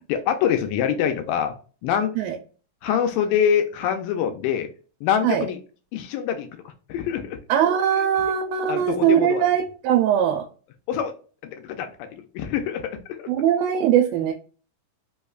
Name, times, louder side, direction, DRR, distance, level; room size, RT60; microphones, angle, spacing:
voice 1, 0.1-1.5 1.8-2.1 2.8-4.7 5.0-5.6 5.9-6.5 6.9-7.4 8.0-8.1 8.7-9.4 10.9-11.1 11.4-12.1 12.3-13.3, left 8 dB, 80° left, 6 dB, 2.2 m, -24 dB
voice 2, 7.5-10.4 13.3-14.3, right 10 dB, 90° right, 4 dB, 2.3 m, -21 dB
5.3 x 2.2 x 2.3 m, 0.38 s
omnidirectional pair, 4.0 m